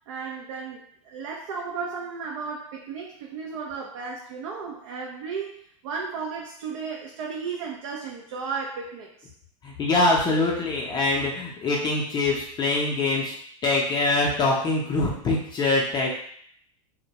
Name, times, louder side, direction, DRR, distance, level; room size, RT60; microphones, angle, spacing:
voice 1, 0.1-9.3, right 5 dB, 70° right, -1 dB, 0.4 m, -34 dB
voice 2, 9.6-13.3 13.6-16.2, left 2 dB, 25° left, -3 dB, 0.5 m, -24 dB
2.1 x 2.1 x 2.8 m, 0.66 s
hypercardioid pair, 115°, 17 cm